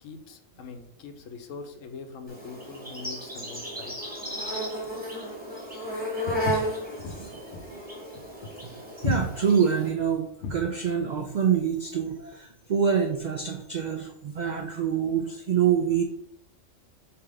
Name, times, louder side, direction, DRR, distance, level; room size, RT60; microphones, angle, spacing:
voice 1, 0.0-3.9, left 4 dB, 85° left, 6 dB, 1.1 m, -42 dB
Insect, 2.3-9.9, equal, 5° right, 1.2 m, -34 dB
Walk footsteps, 6.3-10.7, left 3 dB, 65° left, 0.8 m, -33 dB
voice 2, 7.0-7.4 7.7-7.8 9.0-16.0, right 7 dB, 75° right, 4 dB, 0.4 m, -26 dB
3.4 x 2.9 x 4.7 m, 0.70 s
omnidirectional pair, 1.3 m